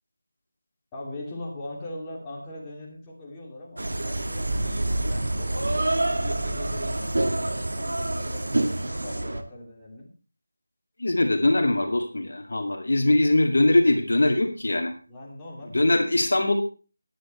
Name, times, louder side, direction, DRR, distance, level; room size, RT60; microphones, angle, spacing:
voice 1, 0.9-5.9 6.2-8.6 8.9-10.1 15.1-16.3, left 1 dB, 10° left, -5 dB, 2.7 m, -41 dB
sound 1, 3.8-9.4, right 1 dB, 60° right, 1.4 m, -27 dB
voice 2, 11.0-14.9 15.7-16.5, left 2 dB, 55° left, 4 dB, 2.2 m, -21 dB
14.0 x 10.5 x 3.2 m, 0.35 s
figure-of-eight pair, 165°, 0 cm